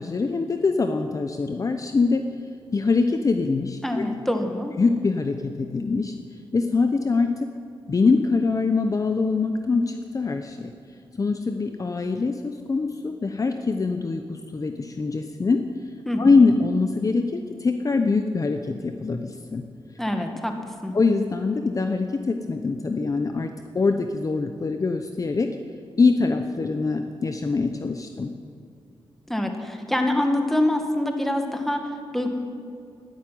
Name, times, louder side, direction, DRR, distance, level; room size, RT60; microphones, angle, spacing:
voice 1, 0.0-2.2 2.7-4.0 4.8-6.1 6.5-7.3 7.9-10.7 11.1-15.6 16.2-19.6 20.9-25.5 26.0-28.3, left 4 dB, 35° left, 6 dB, 0.8 m, -23 dB
voice 2, 3.8-4.7 16.1-16.4 20.0-20.5 20.8-21.0 29.3-32.3, left 1 dB, 5° left, 4 dB, 2.0 m, -25 dB
12.5 x 11.5 x 9.4 m, 2.6 s
cardioid pair, 95°, 9 cm